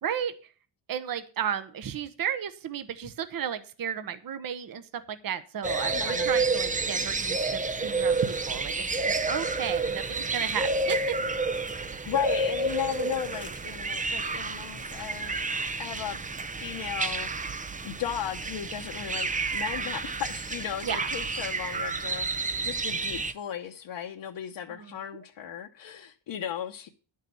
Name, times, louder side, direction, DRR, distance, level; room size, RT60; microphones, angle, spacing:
voice 1, 0.0-0.3 0.9-11.2 20.8-21.1 24.7-24.9, right 8 dB, 45° right, 0.9 m, -33 dB
sound 1, 5.6-23.3, right 3 dB, 20° right, 0.5 m, -30 dB
voice 2, 5.8-6.3 12.0-15.4 15.8-16.3 16.6-26.9, left 10 dB, 65° left, 1.0 m, -36 dB
11.0 x 6.6 x 6.9 m
wide cardioid pair, 175°, 47 cm